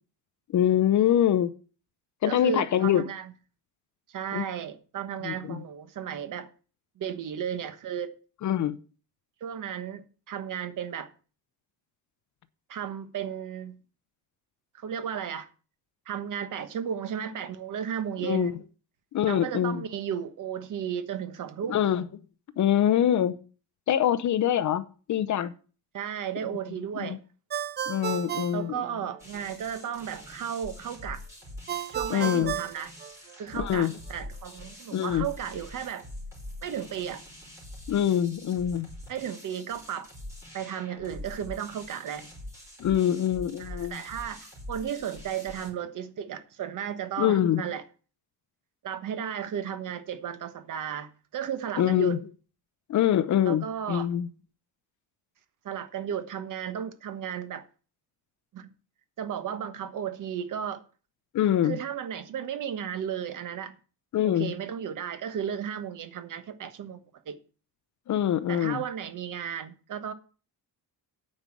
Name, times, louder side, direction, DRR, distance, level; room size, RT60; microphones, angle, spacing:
voice 1, 0.5-1.5 2.2-3.0 4.3-4.4 5.2-5.6 8.4-8.8 18.2-18.5 19.1-19.8 21.7-22.0 22.6-23.3 23.9-24.8 25.1-25.5 27.0-27.2 27.9-28.8 32.1-32.5 33.6-33.9 34.9-35.3 37.9-38.9 42.8-44.0 47.2-47.6 51.8-52.2 52.9-54.3 61.3-61.8 64.1-64.5 68.1-68.8, left 10 dB, 45° left, 0.7 m, -24 dB
voice 2, 2.2-3.3 4.1-6.5 7.0-8.1 9.4-11.1 12.7-13.8 14.7-15.5 16.1-18.6 19.3-21.8 25.9-27.2 28.5-31.2 31.9-32.9 33.4-36.1 36.6-37.2 39.1-40.1 40.5-42.3 43.6-47.8 48.8-52.2 53.5-54.1 55.6-57.6 58.5-58.7 59.2-60.8 61.6-63.8 64.2-67.4 68.5-70.1, right 8 dB, 50° right, 1.3 m, -34 dB
Ringtone, 27.5-29.4 31.7-33.6, right 9 dB, 25° right, 0.4 m, -34 dB
sound 1, 29.2-45.7, left 1 dB, 5° right, 4.3 m, -44 dB
9.6 x 5.4 x 7.6 m
cardioid pair, 160°, 41 cm